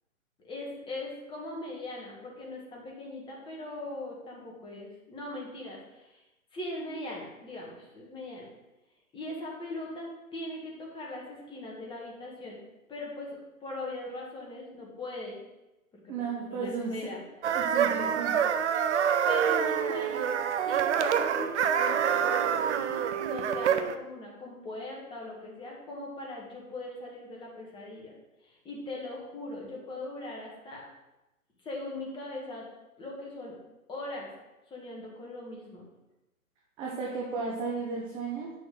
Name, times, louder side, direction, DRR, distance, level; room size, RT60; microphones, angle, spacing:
voice 1, 0.4-6.2 6.5-8.5 9.1-12.6 12.9-15.4 15.9-17.2 17.9-18.1 18.7-19.0 19.3-20.4 20.6-28.1 28.4-30.8 31.6-32.7 33.0-33.6 33.9-34.3 34.7-35.9, left 2 dB, 10° left, -2 dB, 1.7 m, -40 dB
voice 2, 16.1-17.1 17.5-18.3 36.8-38.5, right 4 dB, 10° right, -2 dB, 0.6 m, -34 dB
sound 1, 17.4-24.0, right 8 dB, 50° right, 0.7 m, -26 dB
8.6 x 6.3 x 3.9 m, 0.99 s
hypercardioid pair, 135°, 43 cm